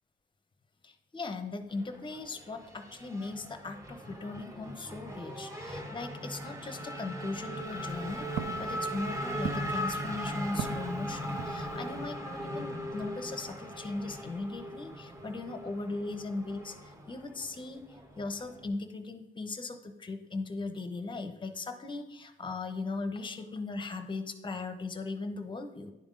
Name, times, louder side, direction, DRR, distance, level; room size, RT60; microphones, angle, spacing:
voice 1, 0.8-8.3 8.6-17.8 18.2-25.9, left 3 dB, 25° left, 7 dB, 0.7 m, -38 dB
Race car auto racing / Accelerating revving vroom, 1.7-18.7, equal, 15° right, 1.0 m, -39 dB
Walk footsteps, 7.5-12.1, right 7 dB, 70° right, 0.6 m, -42 dB
10.5 x 3.5 x 3.8 m, 0.97 s
cardioid pair, 90°, 20 cm